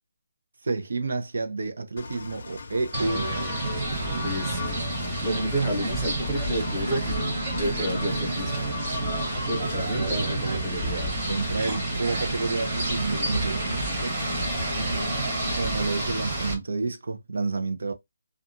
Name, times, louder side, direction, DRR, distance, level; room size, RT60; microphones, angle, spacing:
voice 1, 0.6-3.7 9.8-10.9 11.3-14.2 15.5-17.9, right 3 dB, 65° right, 0.5 m, -30 dB
Engine, 2.0-15.5, left 4 dB, 50° left, 0.6 m, -39 dB
sound 1, 2.9-16.6, right 2 dB, 20° right, 1.0 m, -29 dB
voice 2, 4.2-4.7 5.2-8.7 9.4-11.1 13.1-13.4 14.7-15.4, right 1 dB, ahead, 0.8 m, -31 dB
2.8 x 2.3 x 2.5 m
hypercardioid pair, 180°, 0 cm